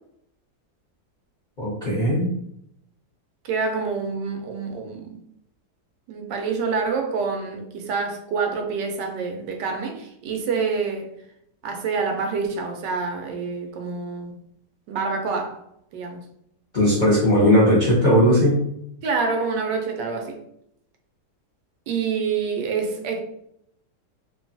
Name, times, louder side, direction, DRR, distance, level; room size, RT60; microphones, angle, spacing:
voice 1, 1.6-2.3 16.7-18.6, equal, 40° left, 0.6 m, -18 dB
voice 2, 3.4-5.2 6.1-11.1 11.6-14.4 14.9-15.6 15.9-16.3 19.0-20.4 21.9-23.2, right 5 dB, 80° right, 1.2 m, -27 dB
3.0 x 2.3 x 2.6 m
omnidirectional pair, 1.9 m